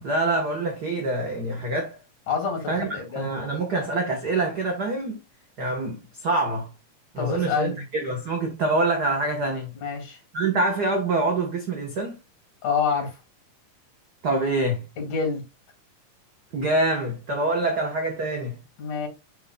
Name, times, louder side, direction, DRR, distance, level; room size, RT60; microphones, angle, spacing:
voice 1, 0.0-2.0 2.7-2.9 3.1-5.2 5.6-6.7 7.1-9.7 10.3-12.2 14.2-14.8 16.5-18.6, right 2 dB, 75° right, 0.9 m, -25 dB
voice 2, 2.3-3.5 7.2-7.8 9.8-10.2 12.6-13.2 15.0-15.4 18.8-19.1, left 5 dB, 70° left, 4.0 m, -27 dB
11.0 x 3.9 x 2.3 m
omnidirectional pair, 3.7 m